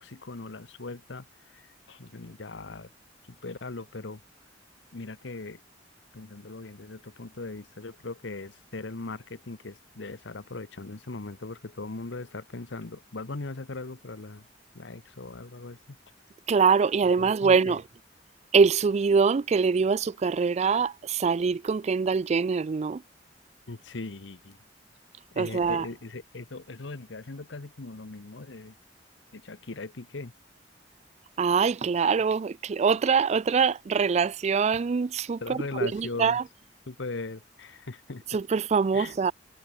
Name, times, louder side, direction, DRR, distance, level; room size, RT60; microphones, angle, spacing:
voice 1, 0.0-2.9 3.3-4.2 4.9-5.6 6.1-14.5 14.7-15.8 17.2-17.8 23.7-24.6 25.3-28.7 29.3-30.3 35.4-36.4 36.9-38.2 38.9-39.1, left 3 dB, 80° left, 1.1 m, -39 dB
voice 2, 16.5-17.8 18.5-23.0 25.4-25.8 31.4-36.4 38.3-39.3, right 5 dB, 35° right, 0.3 m, -24 dB
head